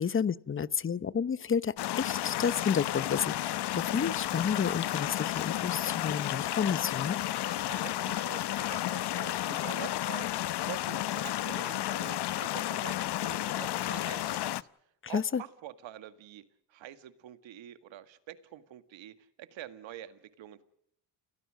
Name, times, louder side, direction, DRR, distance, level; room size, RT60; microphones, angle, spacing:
voice 1, 0.0-7.2 15.1-15.4, left 7 dB, 25° left, 0.8 m, -31 dB
sound 1, 1.8-14.6, left 13 dB, 60° left, 0.9 m, -32 dB
sound 2, 3.6-11.6, left 8 dB, 90° left, 7.3 m, -59 dB
voice 2, 7.4-14.7 15.0-16.4 16.7-20.6, right 12 dB, 75° right, 2.1 m, -46 dB
29.0 x 17.0 x 6.5 m
cardioid pair, 85°, 46 cm